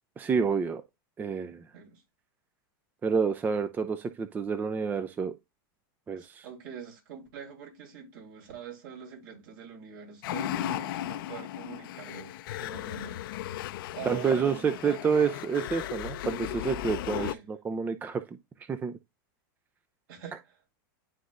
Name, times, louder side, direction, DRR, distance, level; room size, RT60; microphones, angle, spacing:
voice 1, 0.2-0.8 1.2-1.6 3.0-5.3 6.1-6.4 14.1-18.2 18.7-18.9, right 6 dB, 15° right, 0.4 m, -28 dB
voice 2, 6.2-13.3 13.9-15.0 17.2-17.5 20.1-20.6, right 7 dB, 60° right, 3.6 m, -44 dB
sound 1, 10.2-17.3, left 13 dB, 65° left, 0.6 m, -36 dB
11.0 x 3.9 x 2.4 m
supercardioid pair, 140°, 12 cm